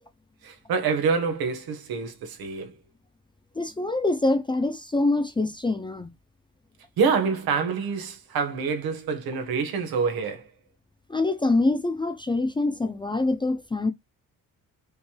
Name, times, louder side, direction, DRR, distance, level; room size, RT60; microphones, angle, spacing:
voice 1, 0.4-2.7 7.0-10.5, right 5 dB, 75° right, 1.4 m, -26 dB
voice 2, 3.6-6.1 11.1-13.9, left 2 dB, 15° left, 0.4 m, -25 dB
5.3 x 3.2 x 2.2 m
cardioid pair, 115°, 36 cm